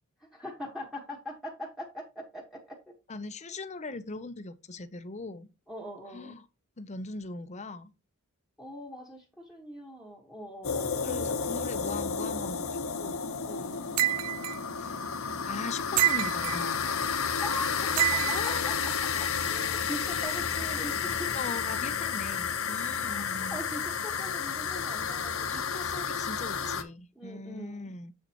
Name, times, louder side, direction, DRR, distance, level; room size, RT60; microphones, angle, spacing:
voice 1, 0.3-2.9 5.7-6.3 8.6-11.7 13.4-13.8 17.4-21.3 23.1-23.2 23.5-25.7 27.1-27.9, equal, ahead, 1.5 m, -42 dB
voice 2, 3.1-5.5 6.1-6.5 6.8-7.9 11.0-13.2 14.8-15.0 15.4-17.0 18.3-18.7 19.2-19.3 21.3-23.6 25.5-28.1, left 3 dB, 30° left, 0.7 m, -40 dB
sound 1, 10.6-26.8, left 6 dB, 65° left, 1.0 m, -31 dB
sound 2, 14.0-14.6 16.0-16.6 18.0-18.5, right 14 dB, 85° right, 0.3 m, -27 dB
7.6 x 6.8 x 3.0 m
head